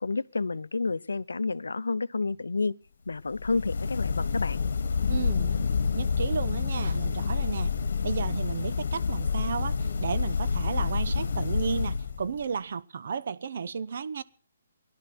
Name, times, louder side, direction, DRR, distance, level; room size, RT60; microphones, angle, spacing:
voice 1, 0.0-2.7 3.1-4.6, left 3 dB, 85° left, 0.6 m, -30 dB
sound 1, 3.3-12.4, left 5 dB, 70° left, 1.4 m, -28 dB
voice 2, 5.1-5.6 5.9-7.7 8.0-14.2, right 6 dB, 60° right, 0.9 m, -33 dB
17.5 x 11.5 x 6.0 m
hypercardioid pair, 145°, 0 cm